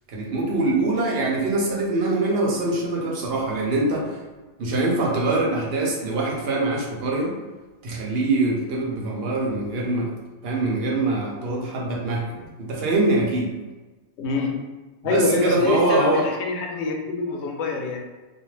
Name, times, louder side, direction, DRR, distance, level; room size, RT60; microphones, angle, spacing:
voice 1, 0.1-4.2 4.6-7.3 7.8-10.2 10.4-13.5 15.0-16.3, right 2 dB, 65° right, -2 dB, 0.8 m, -23 dB
voice 2, 14.2-14.6 15.0-18.0, left 4 dB, 80° left, 0 dB, 0.9 m, -25 dB
2.4 x 2.2 x 3.1 m, 1.2 s
omnidirectional pair, 1.1 m